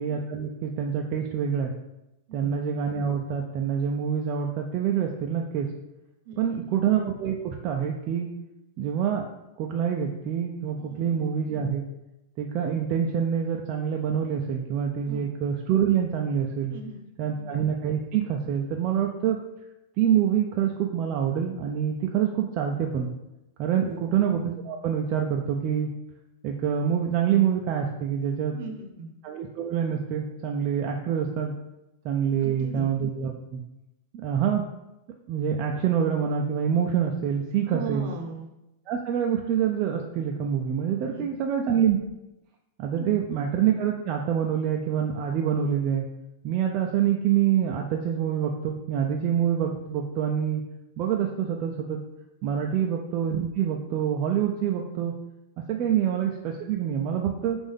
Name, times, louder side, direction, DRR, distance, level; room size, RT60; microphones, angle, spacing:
voice 1, 0.0-1.7 2.3-5.7 6.4-8.3 8.8-9.2 9.6-11.9 12.4-16.7 17.2-19.4 20.0-23.1 23.6-25.9 26.4-28.6 29.2-31.5 32.0-33.6 34.1-34.6 35.3-38.1 38.9-42.0 42.8-46.1 46.4-50.6 51.0-52.0 52.4-55.1 55.7-57.6, right 8 dB, 40° right, 1 dB, 0.4 m, -26 dB
voice 2, 6.2-6.7 10.8-11.1 15.1-15.3 16.7-17.4 23.7-24.1 28.5-29.1 32.4-32.9 37.7-38.5 41.1-41.3 42.9-43.2 52.5-52.7, right 3 dB, 60° right, 4 dB, 0.8 m, -38 dB
5.5 x 2.5 x 3.5 m, 0.93 s
supercardioid pair, 145°, 0 cm